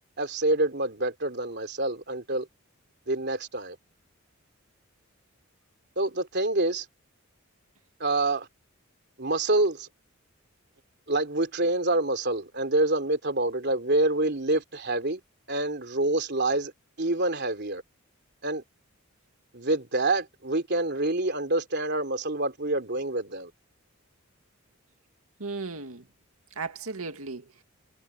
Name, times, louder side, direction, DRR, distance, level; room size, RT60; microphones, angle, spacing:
voice 1, 0.0-2.5 3.1-3.8 6.0-6.9 8.0-8.5 9.2-9.9 11.1-15.2 15.5-16.7 17.0-17.8 18.4-18.6 19.5-23.5, right 2 dB, 50° right, 3.5 m, -27 dB
voice 2, 25.4-26.0 26.6-27.6, right 4 dB, 80° right, 2.2 m, -36 dB
head